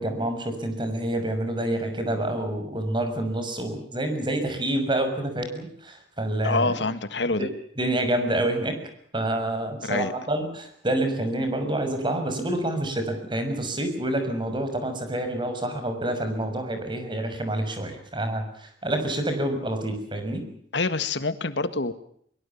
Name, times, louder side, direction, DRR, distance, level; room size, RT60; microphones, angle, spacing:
voice 1, 0.0-6.7 7.4-7.5 7.8-8.8 9.1-20.4, right 1 dB, 30° right, 7 dB, 6.1 m, -27 dB
voice 2, 6.4-7.5 9.8-10.1 20.7-21.9, left 3 dB, 90° left, 12 dB, 1.8 m, -26 dB
23.0 x 22.5 x 7.2 m, 0.66 s
head